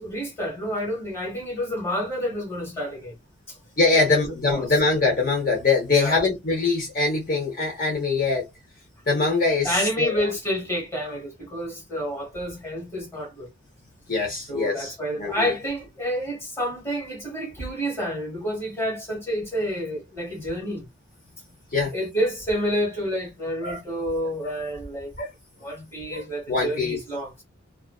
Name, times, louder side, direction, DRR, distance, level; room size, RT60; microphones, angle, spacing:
voice 1, 0.0-3.1 3.5-3.6 3.9-4.7 5.9-6.2 9.6-13.5 14.5-20.9 21.9-25.1 25.6-27.4, equal, 10° left, 1.2 m, -29 dB
voice 2, 3.8-8.5 9.1-10.3 14.1-15.5 21.7-21.9 23.6-23.8 24.4-24.5 25.2-25.3 26.1-27.0, left 3 dB, 45° left, 0.7 m, -23 dB
2.4 x 2.2 x 2.3 m
head